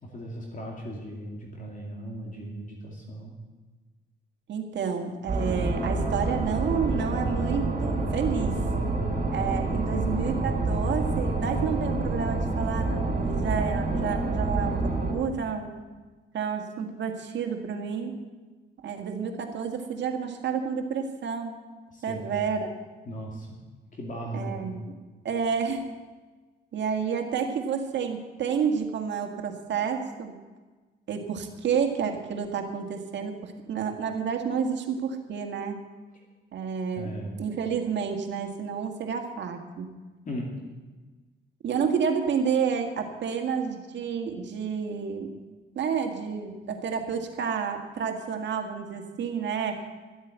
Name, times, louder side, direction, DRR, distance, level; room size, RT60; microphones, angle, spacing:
voice 1, 0.0-3.3 9.8-10.0 21.9-22.4 23.1-23.6 23.9-24.7 36.9-37.3 40.2-40.4, equal, 40° left, -1 dB, 2.6 m, -37 dB
voice 2, 4.5-8.6 9.3-15.7 16.3-18.1 18.8-21.6 22.0-22.7 24.3-24.9 25.2-25.8 26.7-30.4 31.1-35.8 36.5-39.9 41.6-45.3 45.8-49.9, right 6 dB, 65° right, 4 dB, 1.8 m, -30 dB
sound 1, 5.3-15.1, right 2 dB, 35° right, 4.6 m, -27 dB
12.0 x 8.2 x 8.1 m, 1.3 s
cardioid pair, 90°, 20 cm